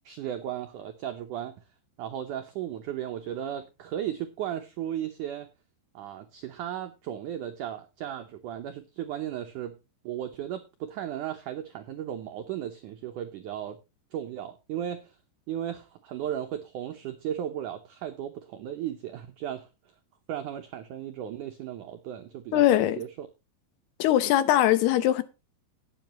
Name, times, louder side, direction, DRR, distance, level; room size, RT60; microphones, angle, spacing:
voice 1, 0.1-1.5 2.0-5.5 5.9-9.8 10.0-13.8 14.1-15.2 15.5-19.7 20.3-23.3, right 10 dB, 85° right, 1.7 m, -35 dB
voice 2, 22.5-23.0 24.0-25.2, left 13 dB, 75° left, 2.9 m, -21 dB
18.0 x 7.7 x 3.0 m
omnidirectional pair, 4.9 m